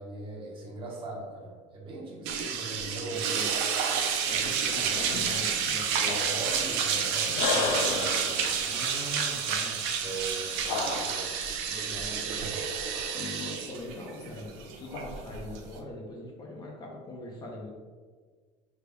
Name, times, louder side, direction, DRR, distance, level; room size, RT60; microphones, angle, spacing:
voice 1, 0.0-3.5 4.7-5.0 6.0-8.8 10.0-11.3, right 2 dB, 30° right, -2 dB, 1.1 m, -40 dB
sound 1, 2.3-15.8, right 7 dB, 70° right, 0.6 m, -30 dB
voice 2, 3.1-3.5 4.3-6.2 8.6-9.8 11.7-12.5 13.1-17.7, left 1 dB, 25° left, -1 dB, 0.6 m, -41 dB
sound 2, 3.9-11.5 12.3-13.8 14.1-15.4, left 4 dB, 70° left, 0.6 m, -35 dB
6.4 x 3.3 x 2.3 m, 1.5 s
cardioid pair, 145°, 17 cm